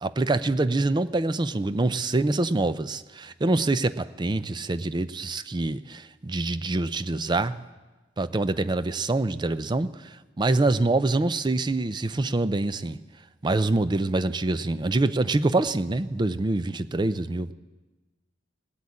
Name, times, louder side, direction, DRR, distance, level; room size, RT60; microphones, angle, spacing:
voice 1, 0.0-7.6 8.2-13.0 13.4-17.5, right 2 dB, 25° right, 0.5 m, -25 dB
19.5 x 8.0 x 8.6 m
head